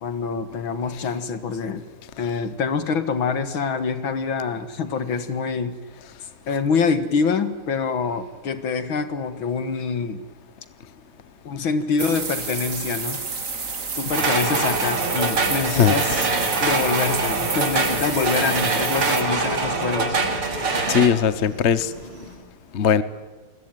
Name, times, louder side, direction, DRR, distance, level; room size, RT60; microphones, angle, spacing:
voice 1, 0.0-1.9 2.2-5.8 6.5-10.2 11.5-13.2 14.0-16.3 16.6-20.5, left 5 dB, 65° left, 2.4 m, -25 dB
sound 1, 12.0-19.2, right 4 dB, 40° right, 2.3 m, -30 dB
sound 2, 14.1-21.1, right 3 dB, 85° right, 3.8 m, -24 dB
sound 3, 16.2-22.4, left 1 dB, 70° right, 6.9 m, -43 dB
voice 2, 20.9-21.9 22.7-23.0, left 7 dB, 45° left, 0.9 m, -19 dB
28.5 x 21.0 x 9.3 m
omnidirectional pair, 2.4 m